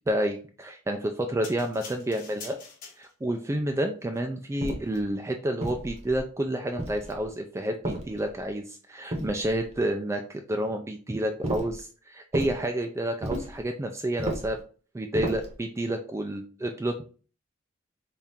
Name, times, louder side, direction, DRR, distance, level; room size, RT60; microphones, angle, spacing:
voice 1, 0.1-2.6 3.0-14.6 14.9-17.0, right 1 dB, 15° right, 4 dB, 0.3 m, -30 dB
sound 1, 1.4-3.4 4.0-4.2, left 4 dB, 45° left, 1.2 m, -45 dB
sound 2, 4.6-5.0 5.6-6.3 6.8-7.3 7.8-8.5 9.1-9.8 11.4-11.8 12.3-12.6 13.2-13.6 14.2-14.6 15.1-15.6, right 1 dB, 35° right, 0.8 m, -33 dB
3.5 x 2.4 x 4.1 m, 0.39 s
head